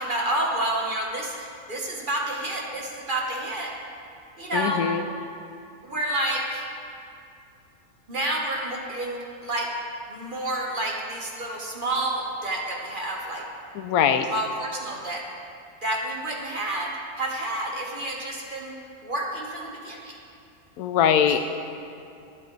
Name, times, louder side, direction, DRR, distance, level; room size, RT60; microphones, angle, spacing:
voice 1, 0.0-3.7 4.4-4.8 5.8-6.7 8.1-9.7 10.1-13.4 14.3-15.3 15.8-18.7 19.0-20.2 21.3-21.4, right 1 dB, 35° right, -1 dB, 1.3 m, -29 dB
voice 2, 4.5-5.0 13.7-14.3 20.8-21.4, left 8 dB, 80° left, 8 dB, 1.1 m, -22 dB
20.5 x 7.7 x 3.2 m, 2.6 s
omnidirectional pair, 1.6 m